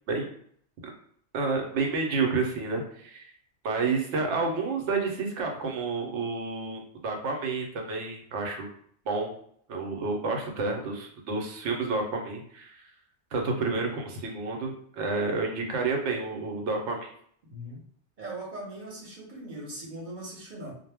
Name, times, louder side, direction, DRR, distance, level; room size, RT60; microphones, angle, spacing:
voice 1, 1.3-3.3 3.6-8.7 9.1-9.3 9.7-12.8 13.3-17.1, right 4 dB, 90° right, 2 dB, 0.9 m, -30 dB
voice 2, 17.5-17.8 18.2-20.7, right 1 dB, 50° right, -2 dB, 0.8 m, -40 dB
2.1 x 2.0 x 3.4 m, 0.62 s
omnidirectional pair, 1.2 m